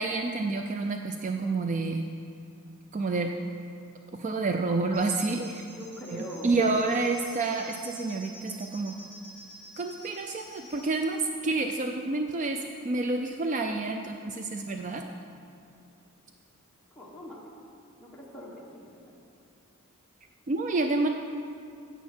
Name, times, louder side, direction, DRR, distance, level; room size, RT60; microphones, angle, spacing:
voice 1, 0.0-2.0 2.9-3.3 4.1-5.7 6.4-8.9 9.8-15.0 20.5-21.1, right 3 dB, 35° right, 4 dB, 0.4 m, -29 dB
sound 1, 4.9-10.9, equal, 90° right, 2.6 m, -48 dB
voice 2, 5.7-6.8 16.9-17.5 18.0-19.1, equal, 5° left, -6 dB, 1.3 m, -42 dB
10.5 x 8.0 x 4.4 m, 2.5 s
head